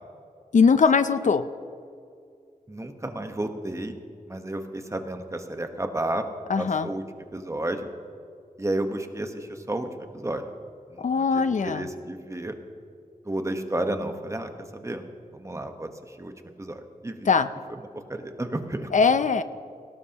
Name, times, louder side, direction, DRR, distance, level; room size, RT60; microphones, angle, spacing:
voice 1, 0.5-1.4 6.5-6.9 11.0-11.9 17.3-17.5 18.9-19.4, left 5 dB, 60° left, 11 dB, 0.5 m, -21 dB
voice 2, 2.7-4.0 4.3-6.2 6.6-7.0 7.3-7.9 8.6-9.9 10.1-10.4 10.9-12.5 13.2-15.0 15.3-15.9 16.2-16.3 16.6-17.3 18.1-18.9, right 1 dB, 20° right, 6 dB, 1.1 m, -31 dB
18.0 x 18.0 x 2.9 m, 2.3 s
wide cardioid pair, 75°, 15 cm